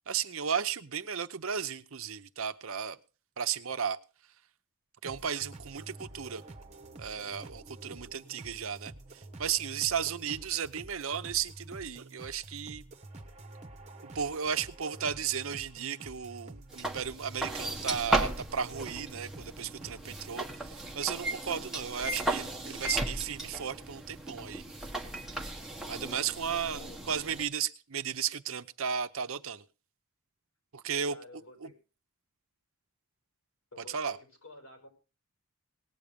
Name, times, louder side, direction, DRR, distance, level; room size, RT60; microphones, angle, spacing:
voice 1, 0.1-3.0 3.4-4.0 5.0-6.4 7.0-12.8 14.1-24.6 25.9-29.6 30.7-31.2 31.6-31.7 33.9-34.2, right 7 dB, 65° right, 11 dB, 0.7 m, -34 dB
sound 1, 5.0-20.3, right 2 dB, 30° right, 1.3 m, -49 dB
sound 2, 16.7-27.4, right 1 dB, ahead, 1.3 m, -36 dB
voice 2, 26.5-27.0 31.1-31.8 33.7-34.9, left 2 dB, 75° left, 3 dB, 5.9 m, -51 dB
18.5 x 8.5 x 5.2 m, 0.34 s
head